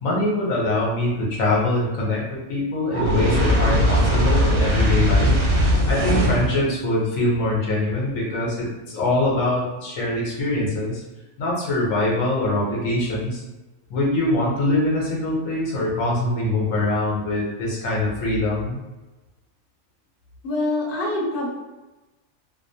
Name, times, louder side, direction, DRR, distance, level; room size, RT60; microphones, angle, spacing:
voice 1, 0.0-5.4 5.8-11.0 11.4-13.4 13.9-18.8, left 1 dB, 75° left, -4 dB, 1.1 m, -23 dB
Fire, 2.9-6.6, equal, 85° right, 1.2 m, -19 dB
voice 2, 20.4-21.5, left 2 dB, 50° left, -4 dB, 0.8 m, -25 dB
2.6 x 2.0 x 2.6 m, 1.1 s
omnidirectional pair, 1.4 m